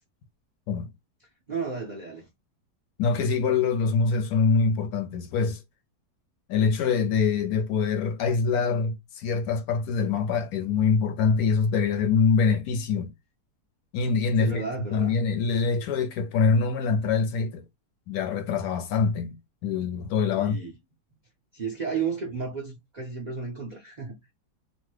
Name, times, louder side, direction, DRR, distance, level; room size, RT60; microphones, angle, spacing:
voice 1, 1.5-2.3 14.4-15.2 20.4-20.7 21.5-24.2, right 5 dB, 55° right, 0.4 m, -33 dB
voice 2, 3.0-5.6 6.5-13.1 13.9-14.6 14.9-17.6 18.1-19.4 19.6-20.6, left 5 dB, 70° left, 1.0 m, -24 dB
2.9 x 2.1 x 3.1 m
omnidirectional pair, 1.8 m